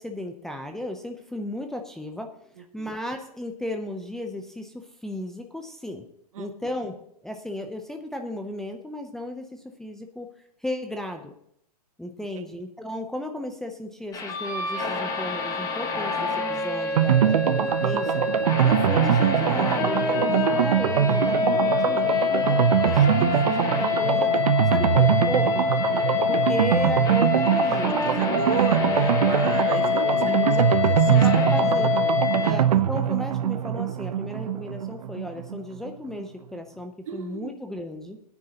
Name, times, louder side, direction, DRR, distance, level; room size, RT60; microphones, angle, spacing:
voice 1, 0.0-2.3 2.7-6.0 6.4-7.0 7.2-10.3 10.6-11.3 12.0-18.2 18.6-24.3 24.7-25.5 26.3-28.6 30.2-30.7 31.1-31.9 32.4-38.2, left 1 dB, ahead, 3 dB, 0.6 m, -34 dB
voice 2, 6.3-6.7 12.2-12.5 25.9-26.5 28.1-31.8 32.4-32.7 37.1-37.6, right 8 dB, 60° right, 8 dB, 1.4 m, -36 dB
sound 1, 14.1-32.5, left 5 dB, 20° left, 1.5 m, -25 dB
sound 2, 17.0-35.6 35.8-35.9 36.2-36.3, right 9 dB, 75° right, 0.8 m, -23 dB
18.0 x 9.7 x 2.9 m, 0.71 s
hypercardioid pair, 140°, 20 cm